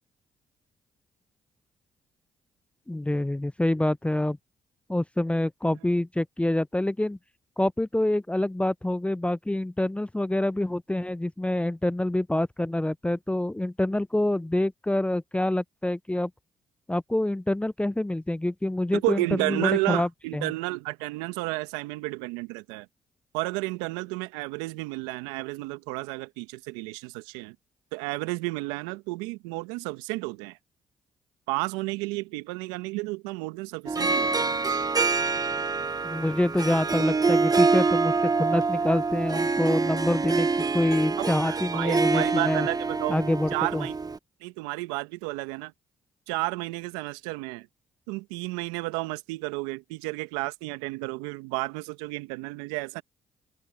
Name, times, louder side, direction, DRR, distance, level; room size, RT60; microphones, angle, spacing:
voice 1, 2.9-4.4 4.9-7.2 7.6-16.3 16.9-20.5 36.0-38.1 38.4-40.5 40.7-42.7 43.1-43.9, left 1 dB, 10° left, 0.6 m, -26 dB
voice 2, 18.9-22.9 23.3-27.5 27.9-30.6 31.5-34.6 41.2-43.2 43.5-44.0 44.4-45.7 46.3-47.7 48.1-53.0, right 22 dB, 85° right, 1.6 m, -32 dB
Harp, 33.9-44.2, right 4 dB, 30° right, 1.5 m, -26 dB
open air
hypercardioid pair, 50°, 13 cm